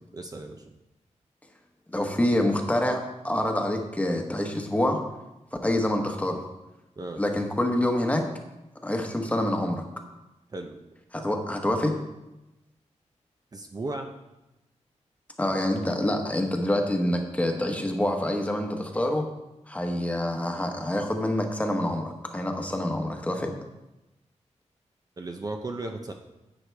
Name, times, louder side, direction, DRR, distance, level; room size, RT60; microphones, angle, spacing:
voice 1, 0.1-0.7 7.0-7.2 10.5-10.8 13.5-14.1 25.2-26.1, right 2 dB, 30° right, 3 dB, 0.7 m, -35 dB
voice 2, 1.9-5.0 5.6-6.4 7.2-8.3 8.8-9.8 11.1-12.0 15.4-19.3 19.7-23.6, left 1 dB, 10° left, 3 dB, 1.1 m, -26 dB
11.0 x 8.2 x 3.4 m, 0.97 s
wide cardioid pair, 150°, 12 cm